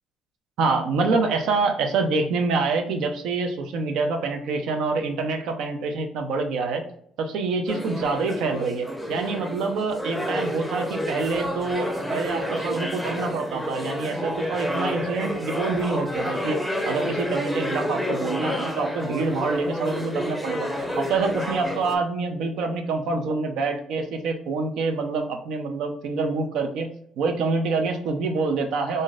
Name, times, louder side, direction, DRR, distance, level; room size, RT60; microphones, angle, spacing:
voice 1, 0.6-6.8 7.2-16.6 16.8-20.7 21.0-26.9 27.2-29.0, right 4 dB, 75° right, 5 dB, 0.5 m, -26 dB
sound 1, 7.7-22.0, equal, ahead, 0.6 m, -29 dB
3.7 x 2.6 x 2.4 m, 0.67 s
supercardioid pair, 80°, 0 cm